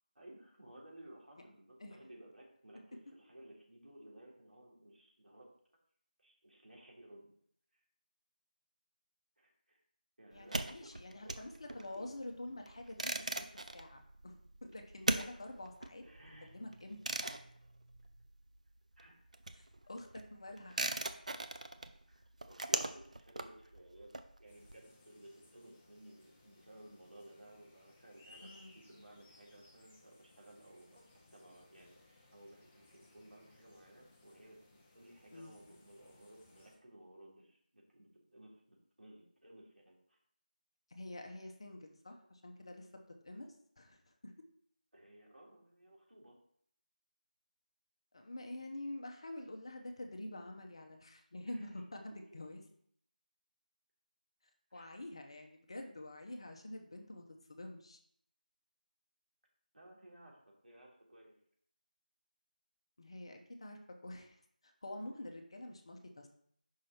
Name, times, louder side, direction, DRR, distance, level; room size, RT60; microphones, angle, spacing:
voice 1, 0.1-5.5 6.2-7.3 9.4-9.8 10.2-11.0 11.2-11.4 11.7-12.1 16.0-16.6 19.0-19.1 22.1-22.2 22.5-40.2 44.9-46.4 51.5-51.7 54.7-54.9 59.7-61.3, right 1 dB, 85° right, -3 dB, 3.2 m, -58 dB
voice 2, 10.3-13.5 13.7-14.3 14.6-16.0 16.5-17.0 19.5-21.1 28.4-28.7 35.3-35.8 40.9-42.9 43.2-43.5 43.8-44.3 48.1-52.6 54.7-58.0 63.0-64.4 64.6-66.3, left 1 dB, 35° left, 4 dB, 0.9 m, -47 dB
sound 1, 10.3-18.7 18.9-24.7, right 2 dB, 50° right, 0.6 m, -40 dB
sound 2, 24.5-36.8, left 2 dB, 10° left, 0.4 m, -64 dB
6.1 x 5.7 x 4.3 m, 0.66 s
figure-of-eight pair, 170°, 5 cm